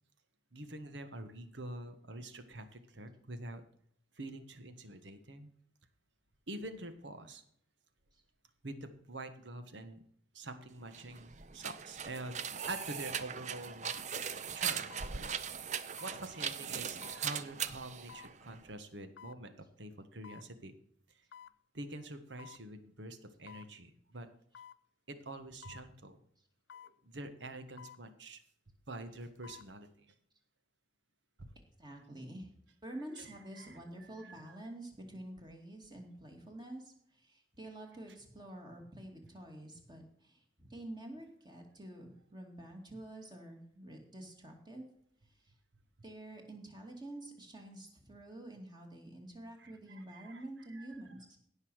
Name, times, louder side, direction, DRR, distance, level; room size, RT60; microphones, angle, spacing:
voice 1, 0.5-3.6 4.1-5.5 6.5-7.4 8.6-10.0 10.3-12.4 12.7-13.9 14.5-15.3 16.0-20.7 21.1-21.3 21.7-24.3 25.1-26.2 26.8-28.4 28.9-30.1 31.4-31.5 33.2-34.6 49.6-50.4 50.7-50.9, right 2 dB, 75° right, 9 dB, 1.5 m, -46 dB
sound 1, 10.8-18.7, right 7 dB, 40° right, 0.6 m, -40 dB
sound 2, 12.7-12.8 13.8-14.1 14.9-15.2 16.0-16.2 17.0-17.3 18.1-18.3 19.2-19.4 20.2-20.5 21.3-21.6 22.4-22.7 23.5-23.7 24.5-24.8 25.6-25.9 26.7-27.0 27.8-28.0 29.2-29.7 30.1-30.2, left 8 dB, 75° left, 0.4 m, -53 dB
voice 2, 31.8-32.5 32.8-44.9 45.2-45.5 46.0-51.3, right 1 dB, 25° right, 2 dB, 2.5 m, -48 dB
16.5 x 5.6 x 6.3 m, 0.67 s
head